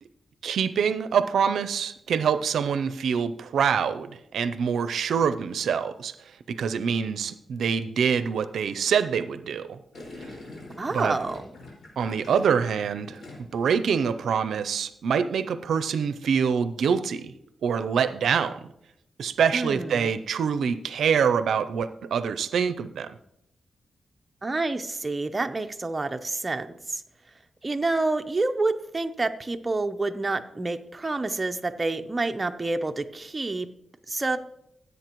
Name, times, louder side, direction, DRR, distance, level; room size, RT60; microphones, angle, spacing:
voice 1, 0.4-9.8 10.9-11.2 12.0-13.2 13.5-17.3 17.6-18.7 19.2-23.2, right 7 dB, 85° right, 12 dB, 0.5 m, -25 dB
Gurgling, 9.9-13.7 14.0-14.4, left 2 dB, 55° left, 4.9 m, -44 dB
voice 2, 10.8-11.5 19.5-20.1 24.4-27.0 27.6-33.7 34.1-34.4, right 3 dB, 25° right, 7 dB, 0.7 m, -28 dB
15.5 x 8.1 x 3.0 m, 0.77 s
cardioid pair, 80°, 0 cm